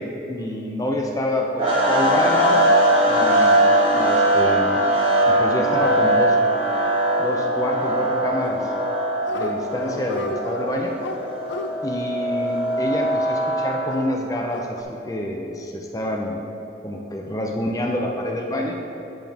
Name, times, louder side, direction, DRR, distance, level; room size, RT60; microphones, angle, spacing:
voice 1, 0.0-2.7 3.0-3.6 3.9-4.8 5.3-6.4 7.2-8.7 9.3-11.0 11.8-16.4 16.8-18.8, left 1 dB, 20° left, 1 dB, 0.6 m, -27 dB
sound 1, 1.6-14.0, right 1 dB, 30° right, 1.2 m, -20 dB
Dog, 8.4-8.9 9.2-9.5 9.8-13.3 13.9-14.8, left 3 dB, 85° left, 0.5 m, -34 dB
8.3 x 7.4 x 3.5 m, 2.9 s
head